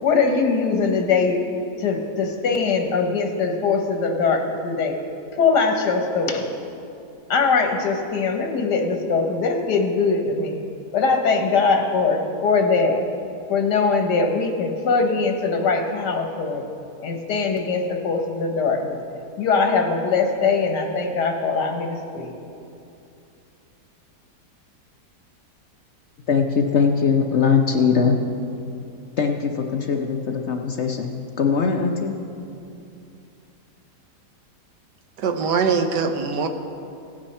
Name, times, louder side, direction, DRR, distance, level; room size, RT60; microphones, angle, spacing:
voice 1, 0.0-1.4 1.8-5.0 5.3-6.6 7.3-10.6 10.9-13.0 13.5-16.6 17.0-19.0 19.4-22.3, left 4 dB, 80° left, 4 dB, 1.7 m, -21 dB
voice 2, 26.3-28.2 29.2-32.2, left 5 dB, 60° left, 3 dB, 0.7 m, -21 dB
voice 3, 35.2-36.5, right 5 dB, 90° right, 7 dB, 1.4 m, -22 dB
16.5 x 8.9 x 4.3 m, 2.7 s
omnidirectional pair, 1.8 m